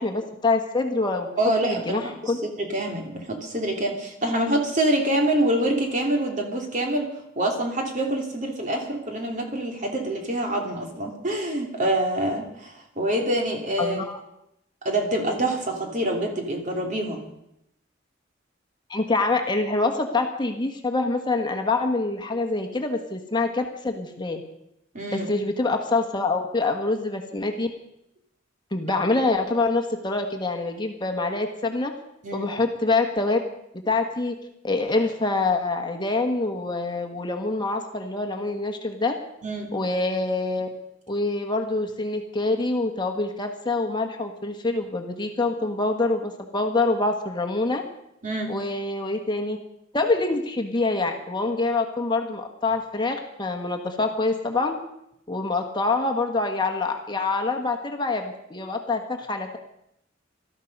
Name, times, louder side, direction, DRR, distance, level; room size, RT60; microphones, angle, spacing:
voice 1, 0.0-1.3 1.6-2.4 13.8-14.2 18.9-24.4 25.1-27.7 28.7-31.9 32.3-33.4 33.8-34.3 34.6-39.1 39.7-40.7 41.1-47.8 48.5-49.6 49.9-54.7 55.3-59.6, left 3 dB, 25° left, 4 dB, 1.4 m, -25 dB
voice 2, 1.4-14.0 14.8-17.2 24.9-25.3 32.2-32.5 39.4-39.7 48.2-48.5, right 1 dB, 40° right, 2 dB, 2.9 m, -26 dB
18.5 x 13.0 x 5.4 m, 0.80 s
head